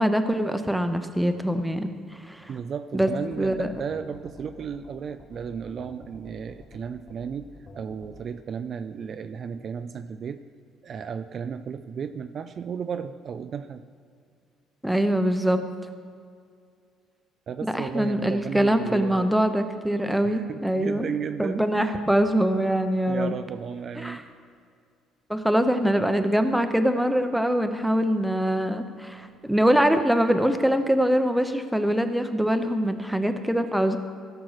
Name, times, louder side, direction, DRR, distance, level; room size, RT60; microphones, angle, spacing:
voice 1, 0.0-1.9 2.3-2.5 2.9-3.1 3.4-3.7 14.8-15.6 17.7-21.1 21.4-23.4 24.0-24.2 25.3-34.0, equal, 5° right, 8 dB, 0.6 m, -23 dB
voice 2, 2.5-7.5 7.7-10.4 10.8-13.8 17.5-19.5 20.2-22.0 23.1-24.2 25.8-25.9, right 7 dB, 40° right, 10 dB, 0.3 m, -34 dB
sound 1, 3.2-8.3, left 3 dB, 40° left, 2.3 m, -48 dB
16.0 x 6.1 x 4.8 m, 2.2 s
cardioid pair, 130°, 0 cm